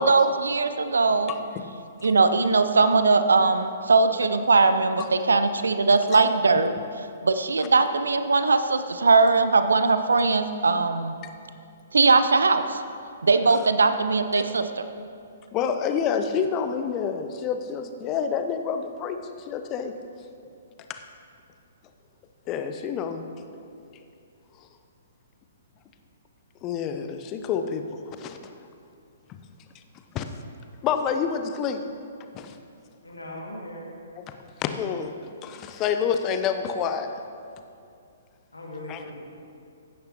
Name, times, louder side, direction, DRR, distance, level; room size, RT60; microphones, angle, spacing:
voice 1, 0.0-1.3 2.0-6.7 7.2-11.2 11.9-12.8 13.2-14.8, right 3 dB, 70° right, 10 dB, 0.6 m, -20 dB
voice 2, 1.3-1.6 15.5-19.2 19.5-19.9 20.9-21.0 22.5-23.2 26.6-28.5 29.3-29.4 30.1-30.2 30.8-31.8 32.3-32.5 34.2-34.3 34.6-35.1 35.4-37.1 38.9-39.1, left 7 dB, 25° left, 7 dB, 0.7 m, -28 dB
voice 3, 33.0-33.9 38.5-39.2, left 1 dB, 80° left, -2 dB, 2.4 m, -39 dB
15.5 x 10.0 x 3.0 m, 2.5 s
figure-of-eight pair, 120°, 0 cm